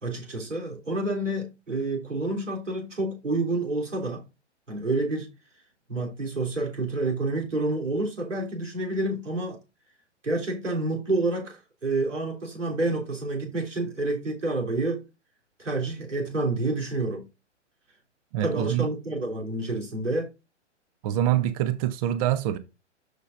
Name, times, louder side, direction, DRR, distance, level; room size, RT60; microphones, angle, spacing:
voice 1, 0.0-4.2 4.7-5.3 5.9-9.6 10.2-15.0 15.6-17.3 18.4-20.3, right 2 dB, 85° right, 3.4 m, -28 dB
voice 2, 18.3-18.9 21.0-22.6, right 12 dB, 30° right, 0.6 m, -25 dB
12.5 x 5.1 x 2.5 m
figure-of-eight pair, 120°, 36 cm